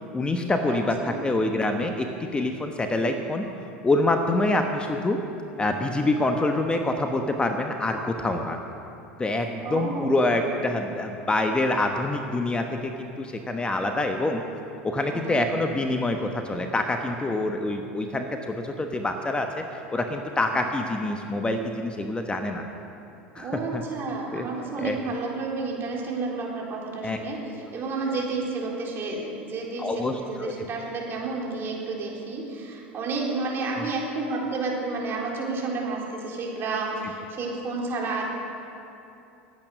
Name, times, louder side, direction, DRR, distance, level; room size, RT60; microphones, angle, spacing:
voice 1, 0.1-2.1 2.3-3.5 3.8-5.2 5.6-8.6 9.2-14.4 14.8-22.6 23.3-23.8 24.3-24.5 24.8-25.0 27.0-27.2 29.8-30.5 33.8-33.9, left 2 dB, 15° left, 4 dB, 1.1 m, -26 dB
voice 2, 0.7-1.2 9.6-10.5 14.8-15.5 17.3-17.4 20.5-20.6 23.4-27.4 27.7-29.9 30.3-38.3, right 3 dB, 40° right, -2 dB, 4.0 m, -31 dB
20.5 x 8.9 x 6.1 m, 2.8 s
hypercardioid pair, 90°, 6 cm